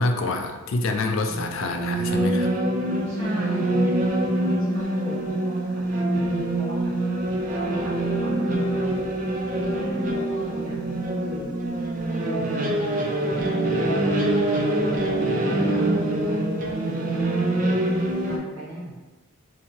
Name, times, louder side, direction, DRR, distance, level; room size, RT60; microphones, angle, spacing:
voice 1, 0.0-2.5, left 2 dB, 60° left, 4 dB, 0.4 m, -26 dB
sound 1, 1.3-18.4, right 1 dB, 35° right, 0.4 m, -25 dB
voice 2, 3.1-7.0 7.5-9.2 9.5-11.5 12.1-14.6 15.4-19.0, right 1 dB, 65° right, -7 dB, 1.3 m, -38 dB
2.8 x 2.7 x 4.2 m, 1.2 s
head